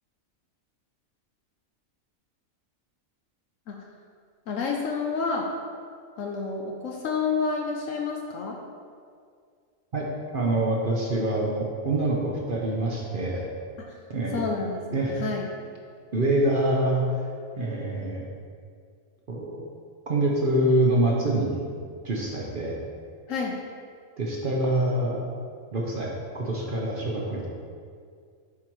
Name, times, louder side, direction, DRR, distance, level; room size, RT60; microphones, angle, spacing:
voice 1, 4.5-5.5 6.2-8.6 13.9-14.0 14.3-15.5 23.3-23.6, left 4 dB, 70° left, 1 dB, 1.0 m, -29 dB
voice 2, 9.9-13.5 14.1-14.4 14.9-15.2 16.1-17.0 17.6-18.3 19.3-19.6 20.1-21.6 22.0-22.8 24.2-25.2 25.7-27.5, right 1 dB, 45° right, -2 dB, 0.8 m, -25 dB
8.4 x 4.8 x 3.0 m, 2.2 s
omnidirectional pair, 1.4 m